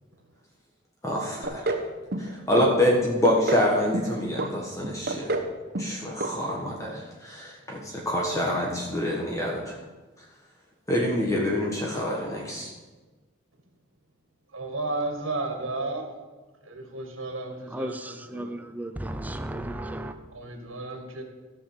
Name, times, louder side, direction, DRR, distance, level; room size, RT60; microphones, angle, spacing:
voice 1, 1.0-1.7 2.2-5.4 5.8-9.8 10.9-12.7, left 1 dB, 15° left, -2 dB, 1.4 m, -26 dB
sound 1, 1.4-1.9 2.1-2.7 3.0-3.7 3.9-4.5 4.8-5.5 5.7-6.0 6.2-6.3 6.7-6.8, right 2 dB, 50° right, 1.0 m, -28 dB
voice 2, 14.5-16.1 16.6-18.5 20.3-21.2, right 2 dB, 85° right, 4 dB, 1.8 m, -33 dB
voice 3, 17.7-20.1, right 1 dB, 10° right, 8 dB, 0.5 m, -34 dB
13.5 x 5.5 x 7.3 m, 1.3 s
head